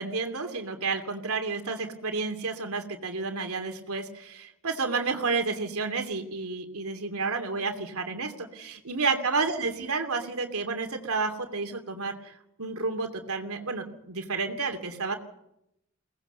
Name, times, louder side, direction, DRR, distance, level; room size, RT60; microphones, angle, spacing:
voice 1, 0.0-12.3 12.6-15.2, right 4 dB, 90° right, 4 dB, 2.8 m, -31 dB
23.0 x 18.5 x 6.9 m, 0.81 s
head